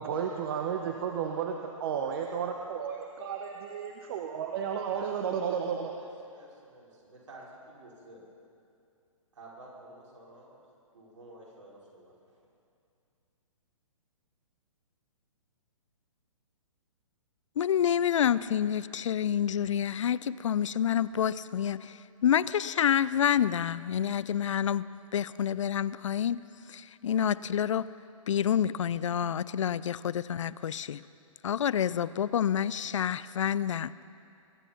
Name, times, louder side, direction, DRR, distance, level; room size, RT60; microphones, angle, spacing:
voice 1, 0.0-5.9, right 7 dB, 45° right, 3 dB, 0.9 m, -33 dB
voice 2, 4.9-8.2 9.3-10.6 10.9-12.1, right 1 dB, 60° right, -4 dB, 4.8 m, -51 dB
voice 3, 17.6-22.0 22.2-24.8 25.1-26.4 26.7-27.9 28.3-31.0 31.4-33.9, left 9 dB, 65° left, 18 dB, 0.4 m, -28 dB
22.0 x 9.7 x 5.7 m, 2.5 s
figure-of-eight pair, 130°, 18 cm